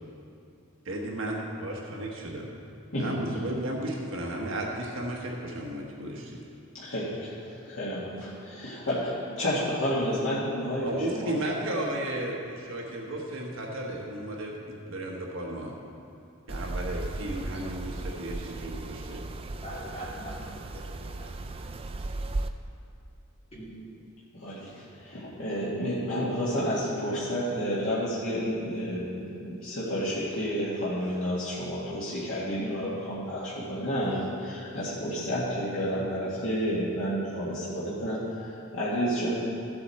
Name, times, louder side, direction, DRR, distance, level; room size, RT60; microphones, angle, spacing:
voice 1, 0.8-2.5 3.0-6.4 10.8-15.7 16.5-19.2, right 1 dB, 65° right, -1 dB, 1.3 m, -34 dB
voice 2, 2.9-3.4 6.7-11.4 24.3-39.3, equal, 65° left, -9 dB, 1.9 m, -30 dB
sound 1, 16.5-22.5, right 2 dB, 25° right, 0.3 m, -36 dB
voice 3, 19.6-21.7 23.5-23.7, equal, 30° left, -8 dB, 3.0 m, -43 dB
14.0 x 7.9 x 4.2 m, 2.6 s
head